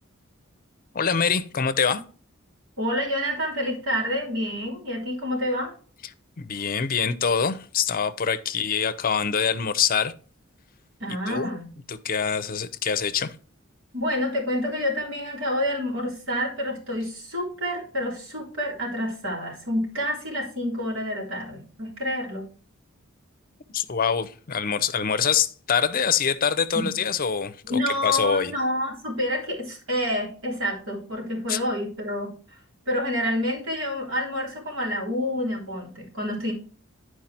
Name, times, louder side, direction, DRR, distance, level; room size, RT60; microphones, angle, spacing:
voice 1, 0.9-2.0 6.4-10.1 11.3-11.5 11.9-13.3 23.7-28.5 31.5-31.6, left 6 dB, 45° left, 0.6 m, -25 dB
voice 2, 2.8-5.7 11.0-11.7 13.9-22.5 26.7-26.9 27.6-32.6 32.9-36.5, left 1 dB, 70° right, 3.7 m, -28 dB
10.5 x 4.7 x 4.3 m
head